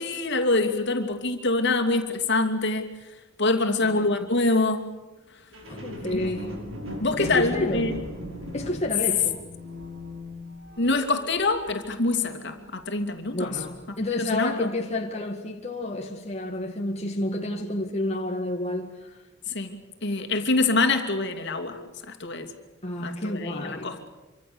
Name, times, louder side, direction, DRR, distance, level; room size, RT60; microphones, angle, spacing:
voice 1, 0.0-2.9 3.4-4.8 6.1-6.4 7.0-8.0 10.8-13.6 14.1-14.7 19.5-21.8 22.1-22.5 23.0-24.0, left 3 dB, 60° left, 2.8 m, -25 dB
voice 2, 3.8-4.2 5.7-6.6 7.2-8.0 8.5-9.5 13.3-19.2 22.8-24.0, left 1 dB, 35° left, 2.0 m, -30 dB
sound 1, 5.5-13.0 13.5-13.6, left 1 dB, 70° right, 5.9 m, -38 dB
26.5 x 25.0 x 7.1 m
head